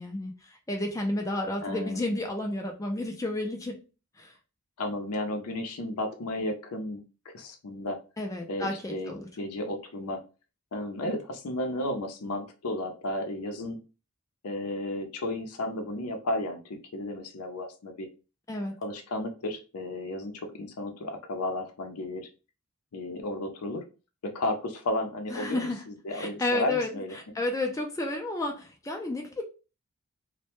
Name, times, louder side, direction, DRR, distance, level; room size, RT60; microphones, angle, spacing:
voice 1, 0.0-3.8 4.2-4.3 8.2-9.3 18.5-18.8 25.3-25.8 26.1-29.4, left 2 dB, 15° left, 0.3 m, -31 dB
voice 2, 1.6-2.1 4.8-7.0 7.3-8.0 8.5-10.2 10.7-13.8 14.4-18.1 18.8-20.3 20.6-22.3 22.9-23.8 24.2-27.1, left 1 dB, 80° left, 0.6 m, -33 dB
2.1 x 2.1 x 2.9 m
head